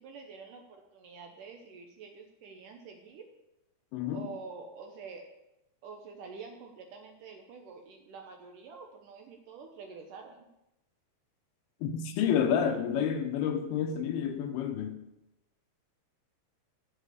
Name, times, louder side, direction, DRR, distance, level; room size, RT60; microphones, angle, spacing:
voice 1, 0.0-3.3 4.1-5.2 5.8-10.5, right 5 dB, 70° right, 2.2 m, -47 dB
voice 2, 3.9-4.3 11.8-15.0, left 8 dB, 75° left, 2.7 m, -29 dB
7.9 x 7.7 x 8.0 m
omnidirectional pair, 4.6 m